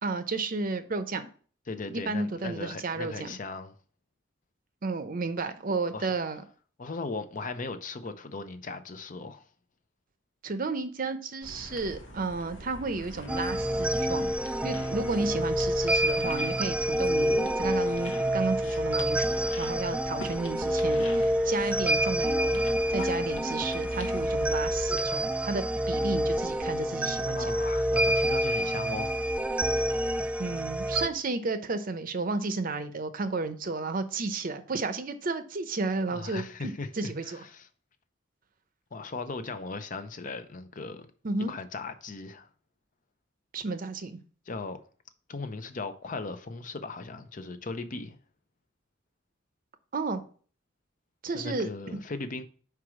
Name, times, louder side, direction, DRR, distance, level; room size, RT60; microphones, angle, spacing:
voice 1, 0.0-1.3 1.9-3.4 4.8-6.4 10.4-14.3 14.6-22.6 22.9-27.6 30.4-36.4 36.9-37.4 41.2-41.5 43.5-44.2 49.9-50.2 51.2-51.7, right 3 dB, 45° right, 0.7 m, -32 dB
voice 2, 1.7-3.7 5.9-6.1 6.8-9.4 27.3-29.3 36.1-37.7 38.9-41.1 41.5-42.5 44.5-44.8 45.3-48.2 51.3-52.4, left 3 dB, 45° left, 0.6 m, -38 dB
sound 1, 11.4-25.2, equal, 85° left, 1.2 m, -44 dB
sound 2, 13.3-31.1, equal, 5° right, 0.3 m, -28 dB
4.8 x 4.7 x 6.1 m
head